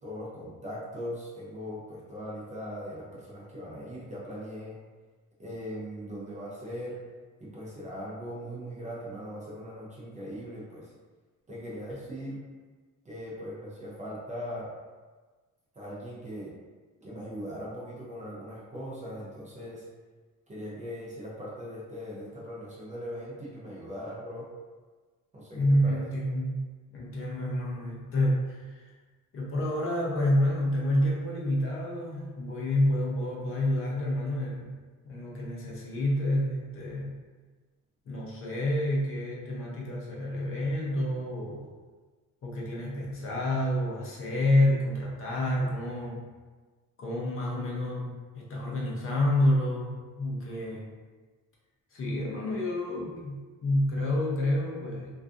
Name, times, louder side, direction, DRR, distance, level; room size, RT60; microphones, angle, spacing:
voice 1, 0.0-4.8 5.4-7.0 7.4-10.9 11.5-12.4 13.0-14.7 15.8-16.5 17.0-19.9 20.5-24.5 25.3-26.0, equal, 20° right, -7 dB, 0.4 m, -40 dB
voice 2, 25.5-26.7 26.9-28.7 29.3-34.8 35.0-37.2 38.1-41.7 42.4-46.2 47.0-50.9 51.9-55.1, left 1 dB, 40° left, -5 dB, 0.5 m, -28 dB
2.6 x 2.4 x 2.3 m, 1.4 s
cardioid pair, 180°, 34 cm